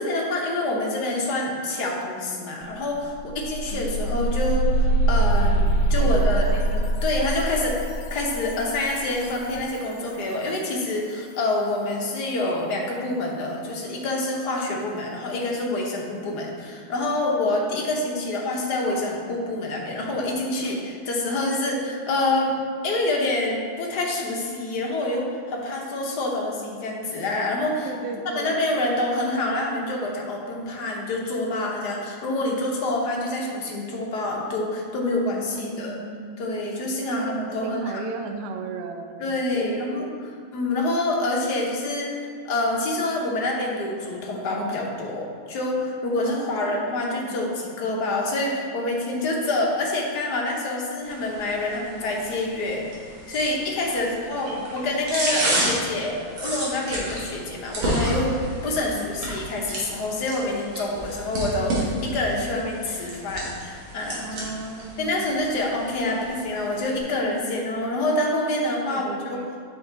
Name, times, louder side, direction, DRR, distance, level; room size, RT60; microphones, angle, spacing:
voice 1, 0.0-7.8 8.1-22.6 22.8-27.9 28.3-36.0 36.4-38.0 39.2-40.1 40.5-52.9 53.3-58.4 58.6-64.2 65.0-69.4, left 2 dB, 55° left, -1 dB, 1.4 m, -27 dB
sound 1, 2.6-2.7 3.0-9.8, right 2 dB, 85° left, 1.6 m, -24 dB
voice 2, 3.7-4.3 6.0-6.6 17.7-18.4 27.8-28.6 35.6-36.4 37.1-40.1 46.5-47.3 53.9-54.6 58.7-59.1 64.2-65.2 66.1-66.3 68.9-69.5, right 4 dB, 80° right, 5 dB, 0.8 m, -37 dB
sound 2, 51.0-67.0, right 1 dB, 60° right, 2.3 m, -31 dB
7.6 x 5.6 x 4.0 m, 2.1 s
omnidirectional pair, 2.4 m